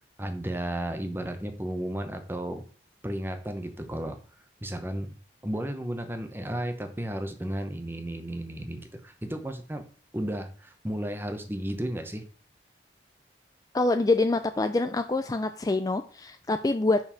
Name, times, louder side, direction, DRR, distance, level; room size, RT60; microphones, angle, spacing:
voice 1, 0.2-2.6 3.0-4.2 4.6-5.1 5.4-9.8 10.1-12.3, right 1 dB, 10° right, 7 dB, 0.8 m, -33 dB
voice 2, 13.7-17.0, left 2 dB, 20° left, 9 dB, 0.3 m, -25 dB
5.3 x 4.9 x 5.6 m, 0.42 s
head